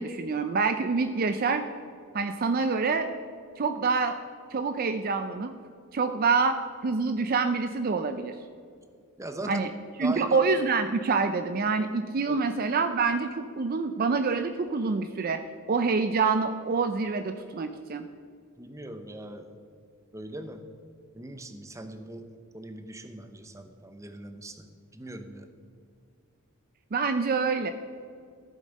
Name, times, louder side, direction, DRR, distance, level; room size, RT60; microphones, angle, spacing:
voice 1, 0.0-1.6 2.1-3.1 3.6-4.2 4.5-5.5 5.9-8.4 9.4-9.7 10.0-15.4 15.7-18.1 26.9-27.7, right 4 dB, 45° right, 9 dB, 0.4 m, -26 dB
voice 2, 9.2-9.7 10.0-10.4 12.3-12.4 18.6-19.5 20.1-20.6 21.1-22.2 22.5-25.5, right 1 dB, 15° right, 7 dB, 0.7 m, -40 dB
13.5 x 7.5 x 5.2 m, 2.2 s
head